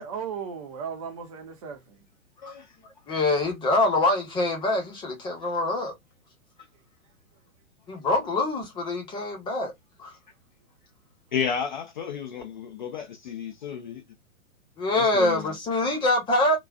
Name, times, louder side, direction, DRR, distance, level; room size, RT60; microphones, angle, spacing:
voice 1, 0.0-2.1, right 7 dB, 25° right, 0.7 m, -36 dB
voice 2, 2.4-2.8 11.3-14.0 14.9-15.6, left 7 dB, 35° left, 0.5 m, -32 dB
voice 3, 3.1-5.9 7.9-9.7 10.0-10.1 14.8-16.6, left 2 dB, 10° left, 0.9 m, -24 dB
3.8 x 2.3 x 2.4 m
figure-of-eight pair, 115°, 42 cm